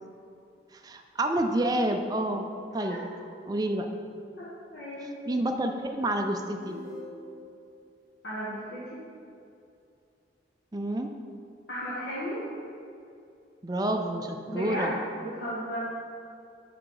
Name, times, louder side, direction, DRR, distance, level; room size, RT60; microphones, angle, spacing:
voice 1, 0.7-2.5 2.7-3.0 3.4-3.9 5.3-6.8 10.7-11.1 13.6-14.9, right 1 dB, 20° right, 4 dB, 0.4 m, -28 dB
voice 2, 4.4-5.1 8.2-9.0 11.7-12.4 14.5-14.9 15.2-15.8, equal, 80° left, -10 dB, 1.4 m, -35 dB
sound 1, 6.6-7.6, left 1 dB, 45° right, 0.9 m, -43 dB
6.0 x 4.9 x 4.7 m, 2.5 s
head